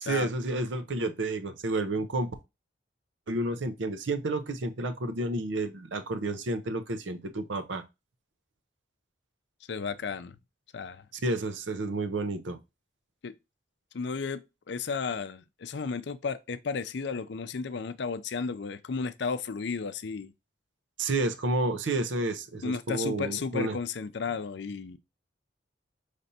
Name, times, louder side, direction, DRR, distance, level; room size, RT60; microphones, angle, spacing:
voice 1, 0.0-2.3 3.3-7.8 11.2-12.6 21.0-23.8, right 2 dB, 80° right, 0.7 m, -30 dB
voice 2, 9.7-10.4 10.7-11.0 13.2-13.3 13.9-14.4 14.7-20.3 22.6-25.0, left 5 dB, 65° left, 0.5 m, -33 dB
5.4 x 3.3 x 2.7 m
head